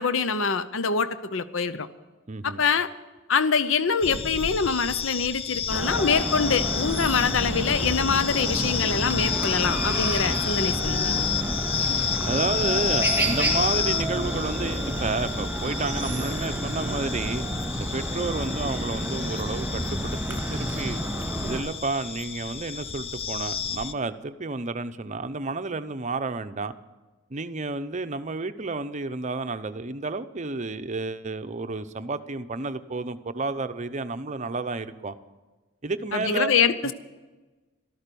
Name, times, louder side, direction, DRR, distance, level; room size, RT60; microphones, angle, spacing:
voice 1, 0.0-1.9 2.4-2.9 3.3-11.3 36.1-36.9, left 5 dB, 65° left, 13 dB, 0.7 m, -24 dB
voice 2, 2.3-2.6 12.2-17.5 17.8-21.0 21.4-26.7 27.3-35.1 35.8-36.5 36.8-36.9, right 3 dB, 35° right, 11 dB, 0.7 m, -31 dB
sound 1, 4.0-23.9, left 7 dB, 30° left, 0.5 m, -31 dB
Chicken rooster, 5.7-21.6, right 1 dB, 10° right, 2.4 m, -30 dB
Wind instrument woodwind instrument, 9.1-17.8, right 10 dB, 75° right, 0.7 m, -43 dB
13.5 x 13.0 x 6.9 m, 1.2 s
head